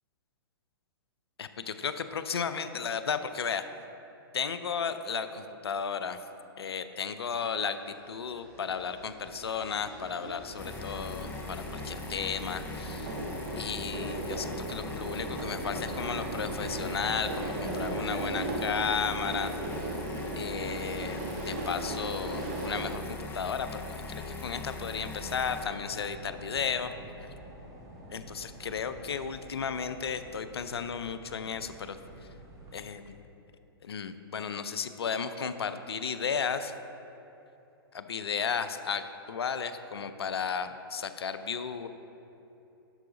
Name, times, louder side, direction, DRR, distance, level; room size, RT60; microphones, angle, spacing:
voice 1, 1.4-3.7 4.3-6.2 6.6-13.1 13.6-19.6 20.3-26.9 28.1-32.0 32.7-33.2 33.8-36.7 37.9-41.9, left 6 dB, 80° left, 10 dB, 0.5 m, -34 dB
sound 1, 8.5-22.9, right 2 dB, 40° right, 1.3 m, -37 dB
sound 2, 10.6-25.6, left 3 dB, 15° left, 0.9 m, -40 dB
sound 3, 25.6-32.9, right 1 dB, 20° right, 1.5 m, -49 dB
12.0 x 4.6 x 3.9 m, 3.0 s
hypercardioid pair, 120°, 13 cm